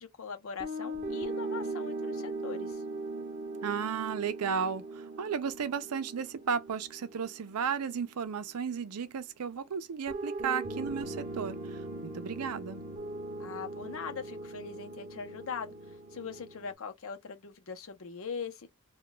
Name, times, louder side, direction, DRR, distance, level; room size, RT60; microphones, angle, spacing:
voice 1, 0.0-2.8 13.4-15.7 16.1-18.7, left 6 dB, 65° left, 0.7 m, -41 dB
sound 1, 0.6-8.7 10.1-16.7, right 2 dB, 35° right, 0.6 m, -40 dB
voice 2, 3.6-12.8, right 6 dB, 90° right, 0.5 m, -34 dB
2.2 x 2.2 x 3.8 m
head